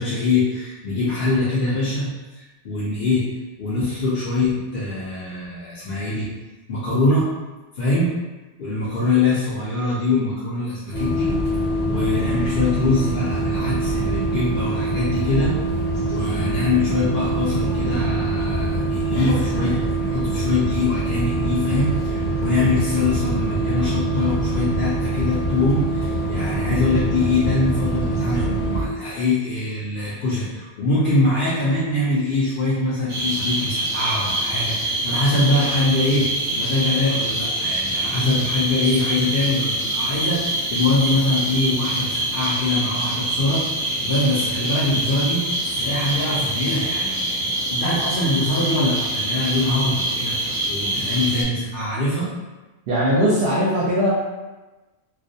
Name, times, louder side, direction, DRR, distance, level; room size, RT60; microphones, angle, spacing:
voice 1, 0.0-2.0 2.3-6.3 6.7-7.3 7.7-8.1 8.6-11.3 11.9-15.5 16.0-36.3 36.6-43.6 44.0-52.3, left 2 dB, 60° left, -9 dB, 0.7 m, -23 dB
sound 1, 10.9-28.9, right 2 dB, 80° left, 1.0 m, -24 dB
sound 2, 33.1-51.4, right 1 dB, 40° right, 0.5 m, -25 dB
voice 2, 52.9-54.1, equal, 70° right, -7 dB, 0.8 m, -19 dB
2.3 x 2.1 x 2.6 m, 1.1 s
omnidirectional pair, 1.1 m